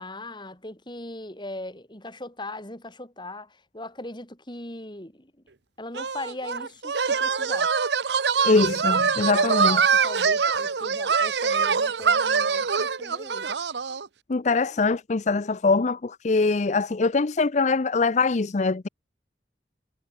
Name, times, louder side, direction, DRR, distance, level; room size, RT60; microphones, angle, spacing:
voice 1, 0.0-5.3 5.8-7.9 9.3-13.5, left 2 dB, 25° left, 6.9 m, -39 dB
sound 1, 5.9-14.1, right 5 dB, 75° right, 0.9 m, -24 dB
voice 2, 8.4-9.8 14.3-18.9, left 3 dB, 40° left, 0.5 m, -23 dB
head